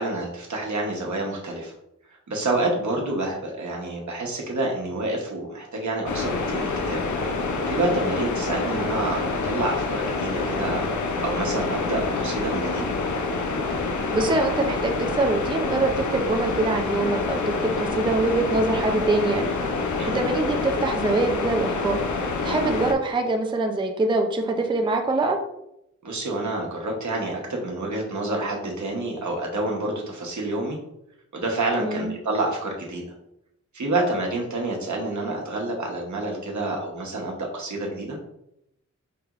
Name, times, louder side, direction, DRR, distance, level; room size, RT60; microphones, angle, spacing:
voice 1, 0.0-1.7 2.3-7.0 7.7-10.9 11.2-12.8 20.0-20.2 26.0-30.8 31.3-33.0 33.7-38.2, right 2 dB, 75° right, -1 dB, 1.0 m, -28 dB
sound 1, 6.1-22.9, left 3 dB, 80° left, 0.5 m, -27 dB
voice 2, 14.1-19.5 20.1-22.0 22.4-25.4 31.8-32.1, right 2 dB, 15° right, 3 dB, 0.4 m, -24 dB
4.7 x 2.9 x 2.4 m, 0.81 s
wide cardioid pair, 95°, 29 cm